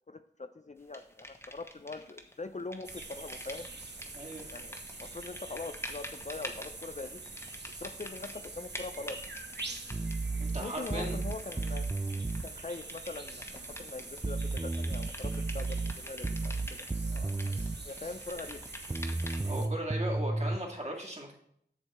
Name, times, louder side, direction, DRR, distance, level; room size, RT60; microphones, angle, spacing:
voice 1, 0.1-3.7 4.5-7.2 7.8-9.2 10.6-11.9 12.4-16.8 17.1-18.6, left 3 dB, 40° left, 9 dB, 0.5 m, -42 dB
sound 1, 0.9-2.3 2.6-19.6, left 1 dB, 15° left, 1.1 m, -47 dB
sound 2, 2.8-19.7, right 3 dB, 65° right, 1.0 m, -45 dB
voice 2, 4.1-4.5 10.4-11.2 19.5-21.3, right 1 dB, 35° right, -1 dB, 2.1 m, -38 dB
sound 3, 9.9-12.5 14.2-17.9 18.9-20.6, right 2 dB, 15° right, 0.4 m, -33 dB
7.9 x 6.7 x 4.3 m, 0.69 s
wide cardioid pair, 40°, 19 cm